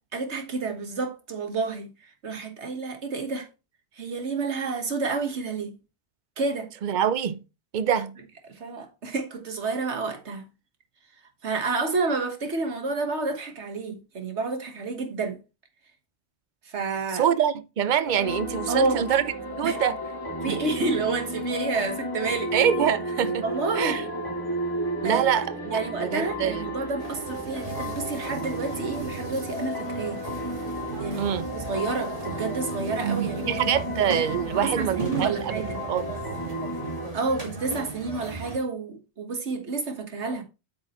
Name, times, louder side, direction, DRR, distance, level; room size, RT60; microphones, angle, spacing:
voice 1, 0.0-3.5 3.9-5.8 6.4-6.7 8.5-10.5 11.4-15.4 16.6-17.3 18.7-19.1 19.6-19.8 20.4-22.5 23.4-24.1 25.0-25.4 25.7-30.2 31.0-33.6 34.6-35.8 37.1-40.4, right 3 dB, 90° right, 1.7 m, -29 dB
voice 2, 6.8-7.4 7.7-8.1 17.1-19.2 19.6-19.9 20.5-20.6 22.5-23.4 23.8-24.0 25.0-26.6 31.2-31.5 33.5-35.6 35.9-36.1, right 9 dB, 55° right, 0.6 m, -25 dB
sound 1, 18.0-37.1, equal, 20° left, 2.5 m, -33 dB
sound 2, 27.0-38.6, right 5 dB, 35° right, 2.6 m, -36 dB
8.5 x 6.1 x 3.0 m
omnidirectional pair, 1.1 m